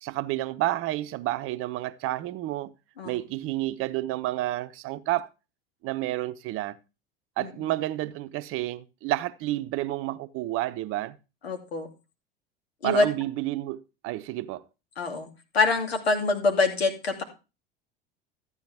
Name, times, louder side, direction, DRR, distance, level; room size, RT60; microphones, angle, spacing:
voice 1, 0.0-2.7 3.0-5.3 5.8-6.8 7.4-11.2 12.8-14.6, right 16 dB, 45° right, 0.8 m, -30 dB
voice 2, 7.4-7.7 11.4-11.9 12.8-13.1 15.0-15.3 15.5-17.2, left 3 dB, 80° left, 2.6 m, -25 dB
13.5 x 8.9 x 3.5 m
hypercardioid pair, 80°, 30 cm